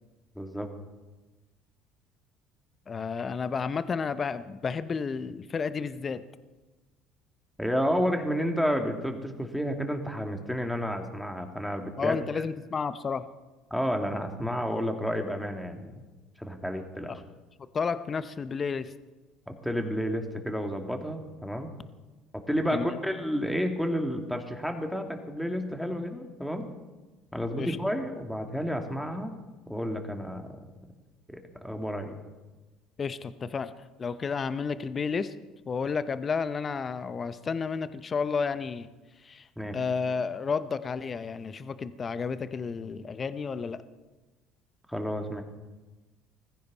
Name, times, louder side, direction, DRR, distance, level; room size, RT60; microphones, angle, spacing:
voice 1, 0.3-0.7 7.6-12.2 13.7-15.9 16.4-17.1 19.5-21.7 22.3-26.7 27.3-29.4 29.7-30.5 31.3-32.1 39.6-39.8 44.9-45.4, equal, ahead, 4 dB, 2.5 m, -31 dB
voice 2, 2.9-6.2 12.0-13.3 17.1-17.2 17.7-18.9 22.7-23.0 27.6-27.8 33.0-33.7 34.0-35.3 35.7-38.9 39.2-39.5 39.7-43.8, left 5 dB, 35° left, 13 dB, 0.8 m, -31 dB
20.5 x 15.0 x 4.2 m, 1.2 s
hypercardioid pair, 60°, 0 cm